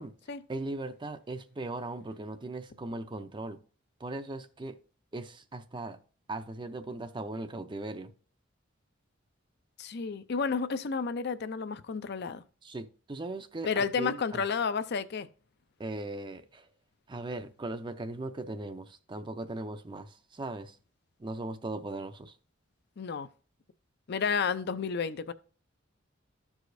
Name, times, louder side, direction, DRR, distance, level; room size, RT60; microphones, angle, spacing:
voice 1, 0.5-3.6 4.0-4.8 5.1-6.0 6.3-8.1 12.6-14.4 15.8-16.7 17.1-20.8 21.2-22.4, right 2 dB, 25° right, 0.5 m, -38 dB
voice 2, 9.8-12.4 13.6-15.3 23.0-23.3 24.1-25.3, left 5 dB, 55° left, 0.5 m, -31 dB
13.5 x 4.8 x 2.6 m
head